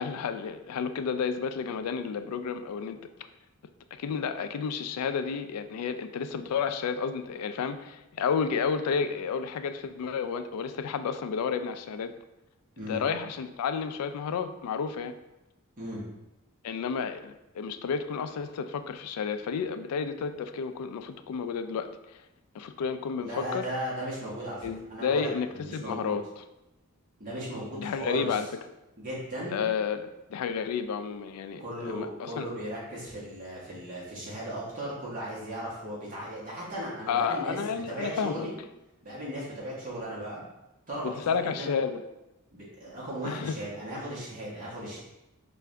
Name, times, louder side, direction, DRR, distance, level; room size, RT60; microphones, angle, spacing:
voice 1, 0.0-3.0 3.9-12.1 12.9-15.1 16.6-22.3 22.5-23.6 24.6-26.2 27.8-28.5 29.5-32.5 37.1-38.5 41.0-42.0 43.2-43.6, left 6 dB, 90° left, 9 dB, 0.3 m, -31 dB
voice 2, 23.2-26.1 27.2-28.4 29.0-29.6 31.6-37.6 37.9-38.5 39.0-40.4 40.9-41.1 41.4-41.7 42.5-45.0, right 1 dB, 35° right, -7 dB, 1.3 m, -36 dB
4.6 x 2.5 x 3.3 m, 0.96 s
head